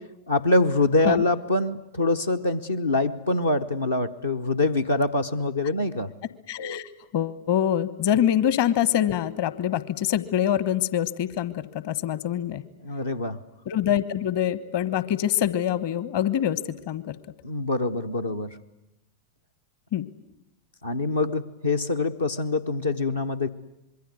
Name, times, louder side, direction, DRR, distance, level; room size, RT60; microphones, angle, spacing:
voice 1, 0.3-6.1 12.8-13.4 17.4-18.6 20.8-23.5, left 2 dB, 75° left, 4 dB, 0.9 m, -24 dB
voice 2, 6.5-12.6 13.7-17.2 19.9-20.1, left 10 dB, 50° left, 17 dB, 1.2 m, -25 dB
26.0 x 22.5 x 9.6 m, 0.88 s
figure-of-eight pair, 90°, 0 cm